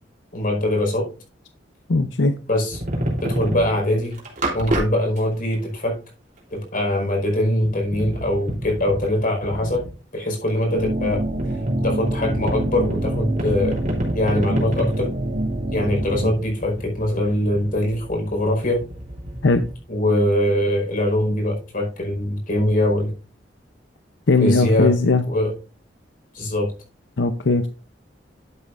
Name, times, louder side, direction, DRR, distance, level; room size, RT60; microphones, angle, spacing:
voice 1, 0.3-1.1 2.5-2.8 3.2-4.2 4.5-6.0 6.5-9.8 10.1-11.2 11.8-13.8 14.1-15.1 15.7-18.8 19.9-23.1 24.4-24.9 25.3-25.5 26.3-26.7, left 1 dB, 50° left, 1 dB, 4.9 m, -22 dB
voice 2, 1.9-2.3 19.4-19.6 24.3-25.2 27.2-27.6, left 3 dB, 85° left, 9 dB, 0.7 m, -18 dB
sound 1, 2.7-3.7 4.1-4.8 5.2-5.3 5.5-5.6 6.4-6.5 7.6-9.9 11.4-19.7, right 1 dB, 45° right, 3.4 m, -30 dB
sound 2, 10.7-16.3, right 1 dB, 85° right, 2.5 m, -26 dB
11.5 x 8.1 x 2.5 m, 0.34 s
head